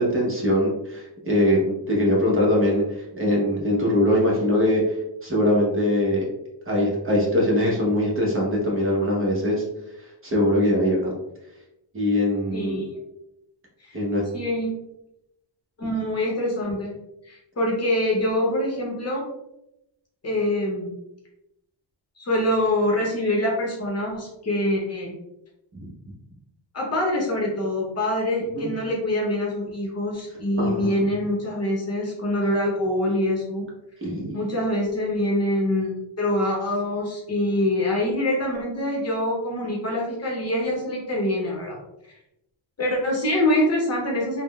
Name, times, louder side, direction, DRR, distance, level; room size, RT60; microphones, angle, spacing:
voice 1, 0.0-1.6 1.9-6.2 6.7-9.6 10.2-11.1 11.9-12.8 13.9-14.2 25.7-25.8 28.5-28.7 30.6-31.0 34.0-34.4, left 1 dB, 30° right, -4 dB, 0.8 m, -22 dB
voice 2, 12.5-13.0 13.8-14.0 14.3-14.7 15.8-16.9 17.3-19.2 20.2-20.9 22.2-25.1 26.7-33.6 34.3-41.8 42.8-44.4, left 1 dB, 35° left, -2 dB, 0.7 m, -25 dB
3.5 x 2.1 x 2.2 m, 0.87 s
wide cardioid pair, 140°, 46 cm